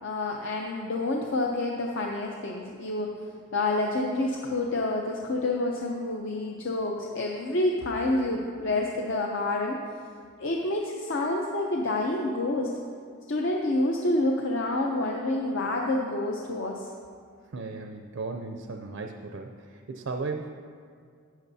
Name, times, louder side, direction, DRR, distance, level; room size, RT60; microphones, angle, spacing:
voice 1, 0.0-3.1 3.5-9.8 10.4-12.7 13.3-16.9, left 2 dB, 55° left, 0 dB, 0.6 m, -28 dB
voice 2, 17.5-20.5, right 3 dB, 60° right, 4 dB, 0.4 m, -36 dB
12.5 x 9.2 x 2.7 m, 2.2 s
head